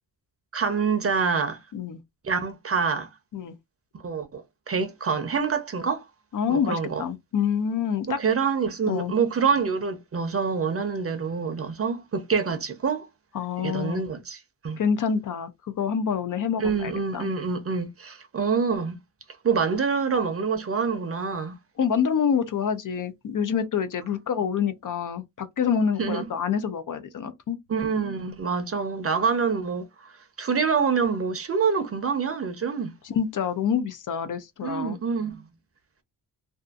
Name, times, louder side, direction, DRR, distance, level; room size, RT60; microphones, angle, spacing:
voice 1, 0.5-1.6 2.2-3.1 4.0-6.0 6.5-7.0 8.1-13.1 13.6-14.8 16.6-19.0 19.4-21.5 26.0-26.2 27.7-29.9 30.4-32.9 34.6-35.4, right 5 dB, 35° right, 0.7 m, -26 dB
voice 2, 6.3-8.2 8.9-9.1 13.3-14.0 14.8-15.5 15.8-17.3 21.8-27.6 33.0-35.0, left 7 dB, 55° left, 0.6 m, -27 dB
2.6 x 2.5 x 2.4 m
cardioid pair, 100°, 39 cm